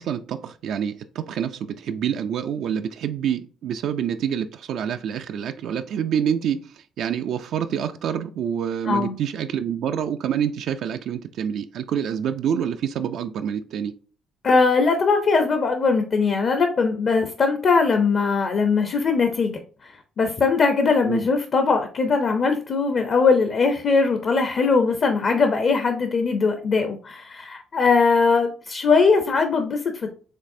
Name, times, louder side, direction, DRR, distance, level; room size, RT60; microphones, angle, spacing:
voice 1, 0.0-13.9 21.0-21.2, right 8 dB, 75° right, 7 dB, 0.3 m, -27 dB
voice 2, 14.4-30.2, left 4 dB, 50° left, 6 dB, 0.7 m, -20 dB
5.2 x 3.3 x 2.7 m, 0.42 s
cardioid pair, 95°, 0 cm